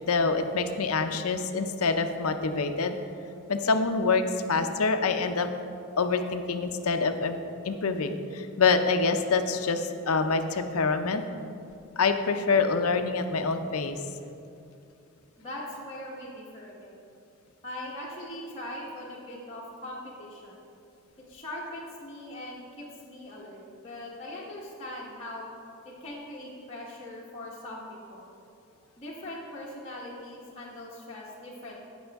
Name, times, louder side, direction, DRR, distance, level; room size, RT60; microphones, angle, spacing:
voice 1, 0.0-3.0 3.5-5.5 6.0-7.4 7.6-11.2 12.0-14.0, left 4 dB, 80° left, 7 dB, 0.6 m, -26 dB
voice 2, 15.4-17.0 17.6-20.6 21.3-25.5 25.8-28.3 29.0-31.9, left 1 dB, 25° left, -7 dB, 1.2 m, -41 dB
16.0 x 6.2 x 3.5 m, 2.6 s
head